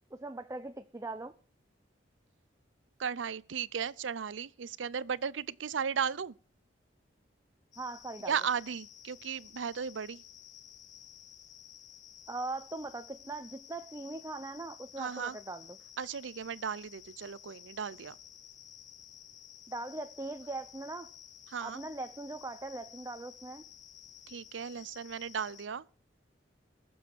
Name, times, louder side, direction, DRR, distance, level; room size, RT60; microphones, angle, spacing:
voice 1, 0.1-1.3 7.8-8.3 12.3-15.7 19.7-21.1 21.6-23.6, right 2 dB, 15° right, 0.5 m, -40 dB
voice 2, 3.0-6.4 8.3-10.2 15.0-15.4 16.0-18.1 21.5-21.8 24.3-25.8, right 7 dB, 90° right, 0.6 m, -36 dB
sound 1, 7.7-25.7, left 10 dB, 40° left, 0.8 m, -53 dB
21.0 x 7.1 x 4.6 m
head